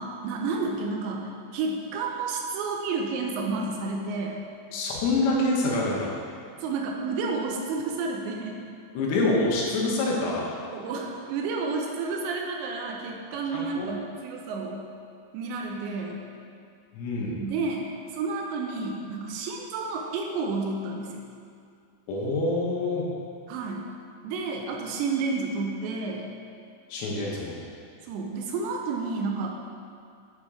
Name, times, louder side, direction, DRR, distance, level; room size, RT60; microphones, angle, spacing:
voice 1, 0.0-4.4 6.6-8.6 10.7-14.8 15.3-16.2 17.4-17.9 18.1-21.3 23.5-23.9 24.2-26.3 28.1-29.6, right 4 dB, 80° right, 1 dB, 2.8 m, -31 dB
voice 2, 4.7-6.1 8.9-10.5 13.5-13.9 16.9-17.4 22.1-23.1 26.9-27.6, left 2 dB, 75° left, -3 dB, 3.1 m, -26 dB
7.7 x 4.2 x 4.9 m, 2.3 s
omnidirectional pair, 5.2 m